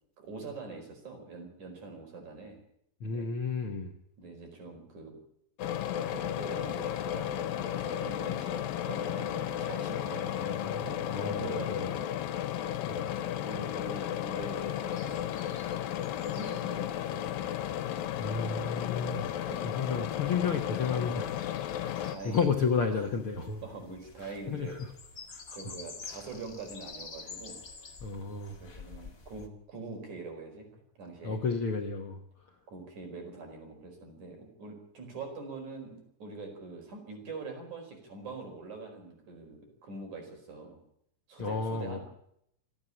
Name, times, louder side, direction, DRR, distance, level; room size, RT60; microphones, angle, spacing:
voice 1, 0.2-2.6 3.1-3.3 4.2-5.1 5.9-12.1 13.1-15.2 16.3-17.5 19.4-19.6 22.1-22.5 22.9-23.0 23.6-24.8 25.5-27.6 28.6-30.7 31.0-31.4 32.7-40.8 41.3-42.0, right 3 dB, 60° right, 4 dB, 6.2 m, -44 dB
voice 2, 3.0-3.9 10.0-11.9 12.8-13.1 18.2-23.6 24.2-24.9 25.3-25.7 28.0-28.6 31.2-32.2 41.4-42.0, left 5 dB, 55° left, 4 dB, 1.7 m, -33 dB
sound 1, 5.6-22.2, left 11 dB, 90° left, 2.8 m, -34 dB
sound 2, 14.4-29.5, left 4 dB, 30° left, 1.9 m, -50 dB
28.0 x 9.6 x 10.0 m, 0.75 s
omnidirectional pair, 4.0 m